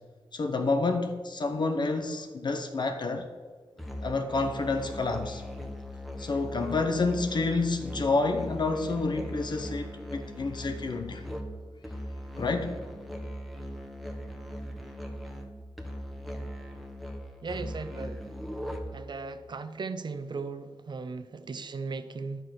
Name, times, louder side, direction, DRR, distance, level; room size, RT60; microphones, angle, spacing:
voice 1, 0.3-3.3 4.0-5.4 6.2-11.2 12.4-12.8, left 3 dB, 50° left, 5 dB, 0.9 m, -29 dB
Musical instrument, 3.8-19.1, equal, ahead, 1.3 m, -39 dB
voice 2, 17.4-18.2 18.9-22.4, right 4 dB, 55° right, 10 dB, 0.7 m, -37 dB
10.5 x 6.3 x 6.5 m, 1.5 s
wide cardioid pair, 110°, 9 cm